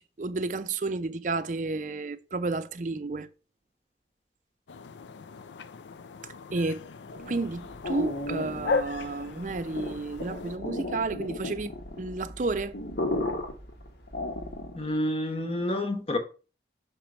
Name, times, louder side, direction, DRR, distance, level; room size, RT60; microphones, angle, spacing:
voice 1, 0.2-3.3 6.5-6.8 7.3-11.7 12.0-12.7, right 3 dB, 45° right, 0.5 m, -31 dB
sound 1, 4.7-10.6, left 4 dB, 85° left, 0.4 m, -36 dB
sound 2, 7.1-14.9, left 1 dB, 70° left, 1.3 m, -35 dB
voice 2, 14.8-16.2, left 1 dB, 35° left, 1.0 m, -28 dB
5.9 x 4.4 x 5.3 m
head